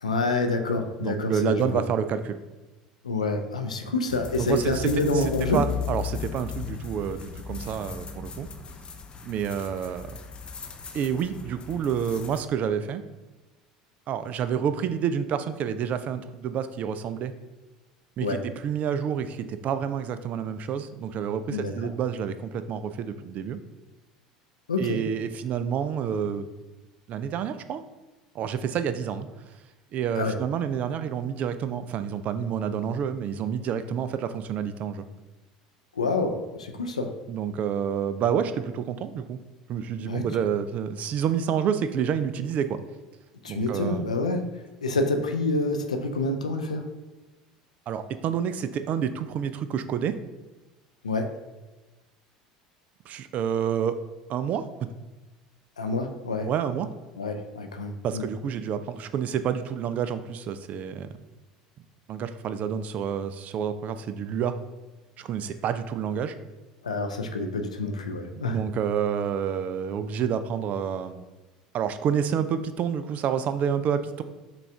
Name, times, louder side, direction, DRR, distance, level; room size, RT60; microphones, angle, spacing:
voice 1, 0.0-1.8 3.0-5.6 18.2-18.4 21.5-21.7 24.7-25.0 30.2-30.4 36.0-37.1 40.0-40.3 43.4-44.4 44.8-46.9 51.0-51.3 55.8-56.5 57.2-58.3 66.8-68.6, left 2 dB, 85° left, 5 dB, 0.4 m, -27 dB
voice 2, 1.0-2.4 3.8-3.9 4.4-4.9 5.1-5.2 5.5-8.5 9.2-10.1 10.9-13.0 14.1-17.3 18.2-18.4 18.6-23.6 24.8-26.5 27.1-27.8 28.3-29.3 29.9-35.1 37.3-39.4 39.7-42.8 43.5-44.0 47.9-50.2 53.1-54.0 54.3-54.9 56.5-56.9 58.0-61.1 62.1-64.6 65.2-66.3 68.3-71.3 71.7-74.2, right 8 dB, 45° right, 11 dB, 0.3 m, -28 dB
sound 1, 4.1-12.4, left 6 dB, 30° left, 0.5 m, -37 dB
5.7 x 2.4 x 3.3 m, 1.2 s
figure-of-eight pair, 70°, 4 cm